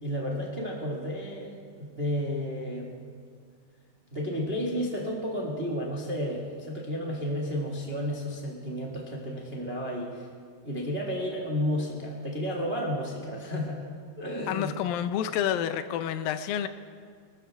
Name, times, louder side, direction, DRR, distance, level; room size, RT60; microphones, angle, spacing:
voice 1, 0.0-2.9 4.1-10.3 10.6-14.7, equal, 40° right, -2 dB, 0.8 m, -32 dB
voice 2, 14.5-16.7, left 10 dB, 80° left, 10 dB, 2.4 m, -29 dB
26.0 x 13.5 x 3.5 m, 2.1 s
omnidirectional pair, 4.2 m